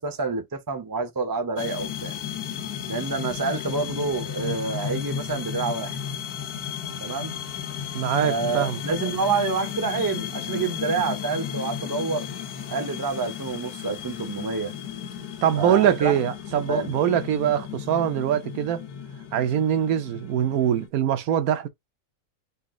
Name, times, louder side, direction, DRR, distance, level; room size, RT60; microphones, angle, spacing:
voice 1, 0.0-2.1 2.9-6.0 7.0-7.3 8.2-12.3 12.7-14.7 15.6-16.1 16.7-16.9, right 4 dB, 30° right, 0.4 m, -28 dB
sound 1, 1.6-20.9, left 9 dB, 80° left, 1.4 m, -34 dB
voice 2, 7.9-8.8 15.4-18.8 19.3-21.7, right 10 dB, 75° right, 1.1 m, -23 dB
4.0 x 2.4 x 3.6 m
omnidirectional pair, 1.6 m